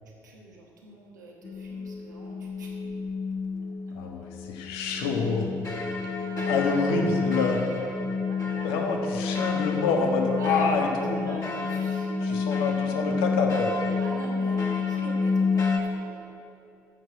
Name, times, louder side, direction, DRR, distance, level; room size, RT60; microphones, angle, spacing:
voice 1, 0.2-2.9 3.9-4.0 6.1-6.5 6.8-7.0 8.3-8.7 9.1-9.2 10.4-10.7 11.1-12.5 12.9-13.1 14.0-16.3, right 3 dB, 90° right, -2 dB, 1.2 m, -43 dB
sound 1, 1.4-15.8, left 4 dB, 35° left, 2.1 m, -29 dB
voice 2, 3.9-5.5 5.9-6.0 6.4-7.6 8.6-11.4 12.2-13.8, left 4 dB, 70° left, 2 dB, 1.3 m, -27 dB
12.5 x 6.5 x 7.8 m, 2.6 s
hypercardioid pair, 50°, 10 cm